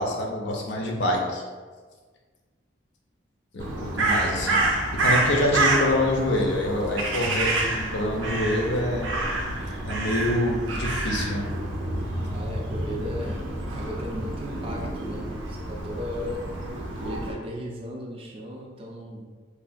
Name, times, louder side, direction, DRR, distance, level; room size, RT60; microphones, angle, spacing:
voice 1, 0.0-1.4 3.5-4.6 4.9-9.1 9.8-11.4, left 1 dB, 65° left, 0 dB, 0.5 m, -26 dB
Crow, 3.6-17.3, right 2 dB, 90° right, 0.5 m, -28 dB
voice 2, 12.3-16.5 17.0-19.3, left 1 dB, 30° right, -1 dB, 0.3 m, -36 dB
3.1 x 2.2 x 2.5 m, 1.5 s
head